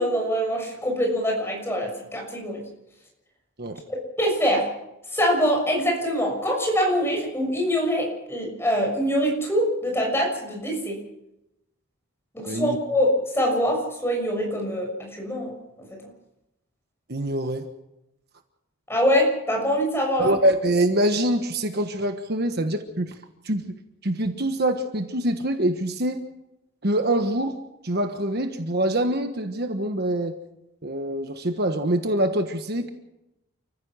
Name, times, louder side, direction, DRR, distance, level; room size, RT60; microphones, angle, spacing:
voice 1, 0.0-2.6 3.9-4.7 5.1-11.0 12.3-15.5 15.9-16.0 18.9-20.3, equal, 10° left, 1 dB, 6.6 m, -24 dB
voice 2, 12.5-12.8 17.1-17.7 20.2-23.2 23.4-23.7 24.0-26.2 26.8-27.6 27.8-30.4 30.8-32.9, right 1 dB, 50° right, 6 dB, 1.4 m, -24 dB
29.5 x 15.0 x 6.4 m, 0.90 s
head